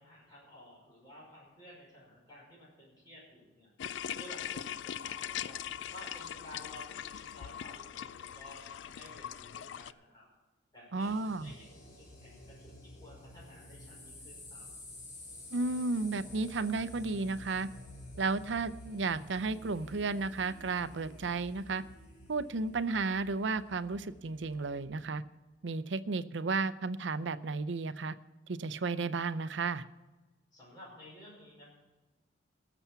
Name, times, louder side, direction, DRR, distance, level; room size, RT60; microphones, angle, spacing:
voice 1, 0.0-3.7 4.2-5.6 5.9-10.3 10.7-14.7 30.5-31.7, left 1 dB, 25° left, -6 dB, 5.5 m, -53 dB
sound 1, 3.8-9.9, left 9 dB, 75° left, 0.4 m, -41 dB
voice 2, 10.9-11.5 15.5-17.7 18.2-21.8 22.3-25.2 25.6-28.2 28.5-29.8, right 3 dB, 70° right, 14 dB, 0.6 m, -33 dB
sound 2, 11.0-24.8, left 1 dB, 45° left, 3.2 m, -51 dB
18.5 x 7.0 x 5.7 m, 1.2 s
head